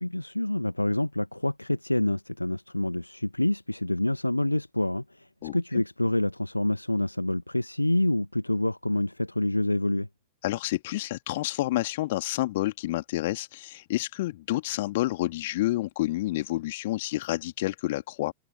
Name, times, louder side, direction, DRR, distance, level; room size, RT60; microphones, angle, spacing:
voice 1, 0.0-10.1, left 1 dB, 85° left, 1.1 m, -27 dB
voice 2, 5.4-5.8 10.4-18.3, left 17 dB, 55° left, 1.8 m, -29 dB
figure-of-eight pair, 90°, 0 cm